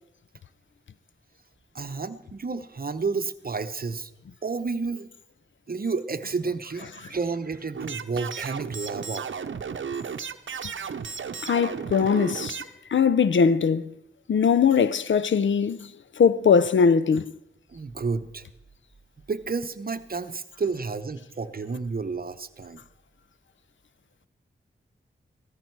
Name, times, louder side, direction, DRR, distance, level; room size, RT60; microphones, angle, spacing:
voice 1, 1.7-4.1 4.4-5.1 5.7-9.3 17.7-18.5 19.3-22.8, right 4 dB, 45° right, 0.8 m, -31 dB
sound 1, 7.7-12.7, right 6 dB, 75° right, 0.7 m, -34 dB
voice 2, 11.4-12.6 12.9-13.9 14.3-15.8 16.2-17.2, left 6 dB, 70° left, 0.5 m, -20 dB
16.0 x 14.0 x 4.6 m
wide cardioid pair, 65°, 20 cm